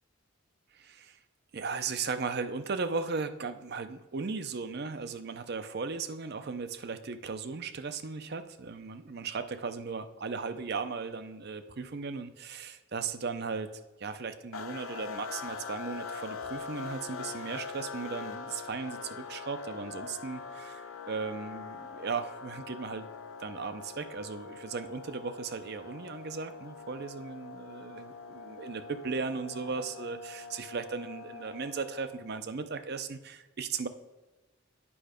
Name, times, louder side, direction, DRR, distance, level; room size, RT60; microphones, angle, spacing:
voice 1, 0.7-1.2 1.5-23.1 23.4-33.9, right 4 dB, 50° right, 11 dB, 0.6 m, -37 dB
sound 1, 14.5-32.4, left 5 dB, 80° left, 0.9 m, -43 dB
8.6 x 5.6 x 5.0 m, 1.2 s
head